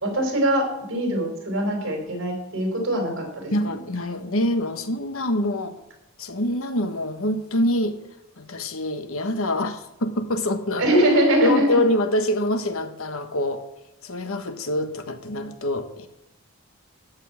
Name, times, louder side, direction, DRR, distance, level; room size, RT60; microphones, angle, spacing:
voice 1, 0.0-3.7 10.8-11.8, right 1 dB, 60° right, 2 dB, 4.2 m, -22 dB
voice 2, 3.5-5.8 6.2-8.0 8.4-10.9 11.4-13.6 14.0-16.1, left 1 dB, 70° left, 8 dB, 1.2 m, -25 dB
14.0 x 5.5 x 8.8 m, 0.85 s
head